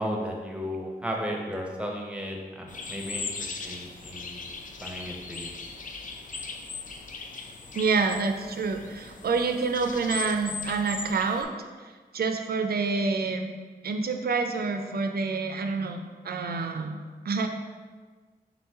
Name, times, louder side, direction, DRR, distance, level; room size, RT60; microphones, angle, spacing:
voice 1, 0.0-4.4 4.8-5.5, equal, 5° right, 0 dB, 0.7 m, -34 dB
sound 1, 2.7-11.4, left 4 dB, 50° left, 0.4 m, -39 dB
voice 2, 7.7-11.5 12.1-13.5 13.8-17.0 17.3-17.5, right 4 dB, 70° right, 5 dB, 0.4 m, -27 dB
3.8 x 3.0 x 3.4 m, 1.4 s
cardioid pair, 55°, 17 cm